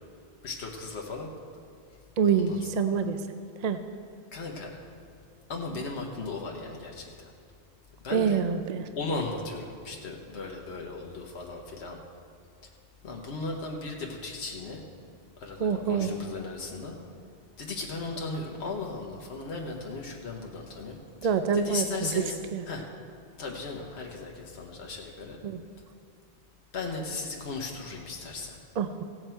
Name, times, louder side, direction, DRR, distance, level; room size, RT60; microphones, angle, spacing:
voice 1, 0.4-1.3 2.3-2.7 4.3-4.7 5.5-7.3 8.0-8.4 9.0-12.0 13.0-14.8 15.4-17.0 17.6-22.4 22.7-22.8 23.4-25.4 26.7-28.6, left 3 dB, 80° left, 0 dB, 1.3 m, -36 dB
voice 2, 2.2-3.2 3.6-3.8 8.1-8.9 15.6-16.1 21.2-22.2 22.5-22.6 25.4-25.6 28.8-29.0, right 6 dB, 55° right, 9 dB, 0.5 m, -26 dB
16.0 x 7.9 x 4.5 m, 2.3 s
omnidirectional pair, 1.1 m